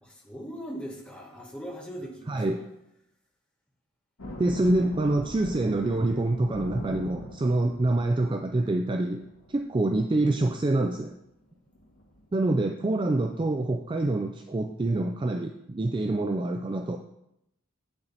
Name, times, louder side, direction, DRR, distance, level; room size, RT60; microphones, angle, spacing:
voice 1, 0.0-2.7 4.2-5.0, equal, 5° left, -1 dB, 1.4 m, -41 dB
voice 2, 2.3-2.6 4.4-9.2 9.5-11.1 12.3-17.0, right 2 dB, 20° right, 5 dB, 0.3 m, -26 dB
sound 1, 4.2-10.0 10.3-10.5 10.9-11.1 11.4-11.5 11.8-12.4, equal, 85° left, 2.1 m, -42 dB
8.1 x 6.9 x 4.1 m, 0.81 s
head